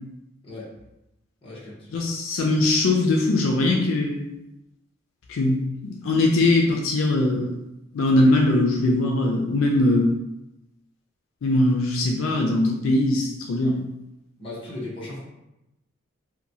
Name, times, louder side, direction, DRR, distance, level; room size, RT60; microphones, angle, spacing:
voice 1, 1.4-1.9 14.4-15.2, left 2 dB, 25° left, -7 dB, 0.8 m, -36 dB
voice 2, 1.9-4.2 5.3-7.5 7.9-10.1 11.4-13.8, left 2 dB, 80° left, 0 dB, 0.4 m, -21 dB
2.9 x 2.2 x 2.6 m, 0.92 s
head